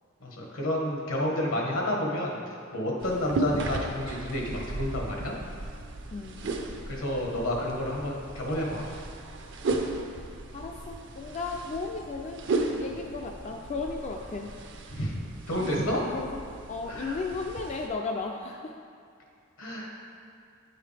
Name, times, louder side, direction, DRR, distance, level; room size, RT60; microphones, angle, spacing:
voice 1, 0.2-2.4 2.7-5.3 6.9-8.8 14.9-15.1 15.5-16.0 16.9-17.2 19.6-19.9, left 1 dB, 80° left, -1 dB, 1.3 m, -30 dB
sound 1, 3.0-17.9, right 2 dB, 60° right, 0.6 m, -35 dB
voice 2, 6.1-6.5 10.5-12.5 12.7-14.5 16.0-16.4 16.7-18.7 19.9-20.0, left 4 dB, 35° left, 1 dB, 0.3 m, -35 dB
9.4 x 4.8 x 3.3 m, 2.4 s
head